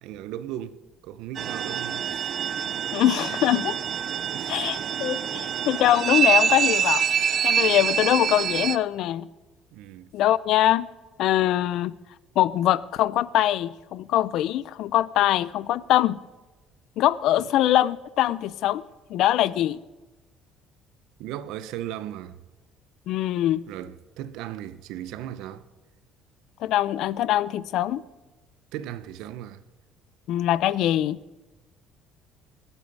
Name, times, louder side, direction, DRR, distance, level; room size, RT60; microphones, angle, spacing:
voice 1, 0.0-2.3 4.3-4.8 9.7-10.1 17.4-17.5 21.2-22.4 23.7-25.6 28.7-29.6, right 11 dB, 75° right, 0.7 m, -37 dB
sound 1, 1.3-8.8, right 8 dB, 35° right, 0.5 m, -25 dB
voice 2, 2.9-3.8 4.5-7.1 7.4-9.3 10.1-10.9 11.2-11.9 12.4-16.2 17.0-18.8 19.1-19.8 23.1-23.6 26.6-28.0 30.3-31.2, left 13 dB, 60° left, 0.4 m, -23 dB
20.5 x 8.2 x 5.3 m
cardioid pair, 170°, 0 cm